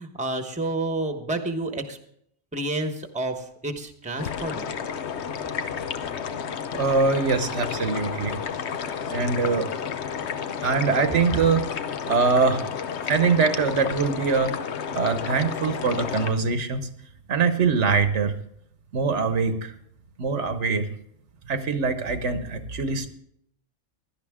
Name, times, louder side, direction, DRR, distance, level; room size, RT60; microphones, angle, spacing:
voice 1, 0.0-2.0 2.5-4.7, right 2 dB, 5° right, 6 dB, 1.0 m, -29 dB
sound 1, 4.2-16.3, left 7 dB, 65° left, 1.0 m, -31 dB
voice 2, 6.7-8.4 9.1-9.7 10.6-11.6 12.1-12.7 13.0-14.5 14.9-16.9 17.3-18.3 18.9-19.7 20.2-20.9 21.5-23.1, right 4 dB, 70° right, 9 dB, 1.3 m, -23 dB
17.0 x 11.5 x 3.6 m, 0.69 s
omnidirectional pair, 1.3 m